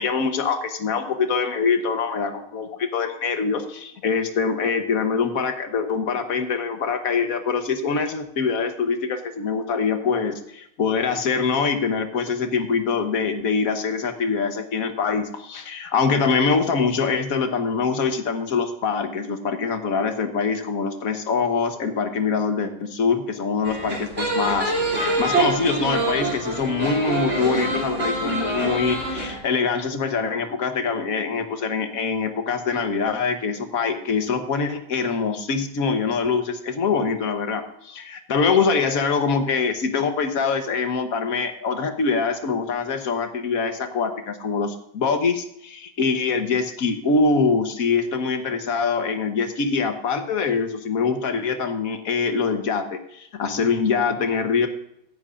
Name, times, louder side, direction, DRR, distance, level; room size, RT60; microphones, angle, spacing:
voice 1, 0.0-24.7 25.0-54.7, left 5 dB, 50° left, 7 dB, 1.3 m, -24 dB
sound 1, 23.6-29.4, right 2 dB, 35° right, 3.4 m, -25 dB
16.0 x 10.5 x 2.5 m, 0.75 s
omnidirectional pair, 2.2 m